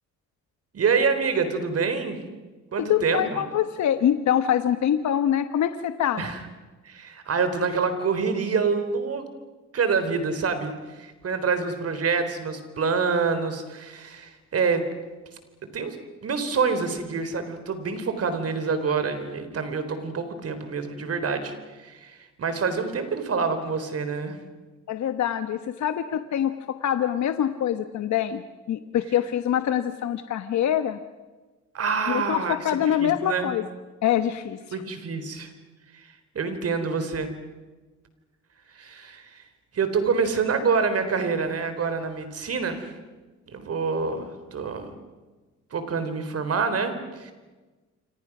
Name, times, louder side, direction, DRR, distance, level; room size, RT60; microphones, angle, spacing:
voice 1, 0.7-2.3 2.7-3.4 6.2-6.4 6.8-9.2 9.7-14.8 15.6-16.0 16.2-24.4 31.7-33.5 34.7-35.5 35.9-36.0 36.3-37.3 38.7-39.4 39.7-42.9 43.5-45.0 45.7-47.3, right 5 dB, 50° right, 9 dB, 4.0 m, -27 dB
voice 2, 2.8-6.3 24.9-28.4 28.7-31.0 32.1-33.6 34.0-34.6, left 10 dB, 65° left, 10 dB, 1.2 m, -24 dB
28.0 x 26.0 x 6.2 m, 1.3 s
cardioid pair, 90°, 30 cm